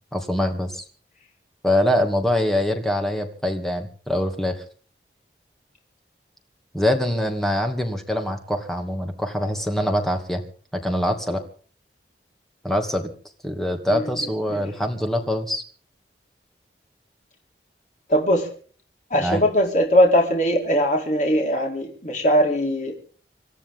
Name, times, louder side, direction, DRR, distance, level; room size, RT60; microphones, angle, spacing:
voice 1, 0.1-0.8 1.6-4.6 6.7-10.4 10.7-11.4 12.6-13.1 13.4-15.6 19.2-19.4, left 1 dB, ahead, 3 dB, 2.5 m, -24 dB
voice 2, 18.1-18.4 19.1-22.9, equal, 45° left, 1 dB, 4.7 m, -20 dB
27.0 x 13.5 x 3.8 m, 0.43 s
head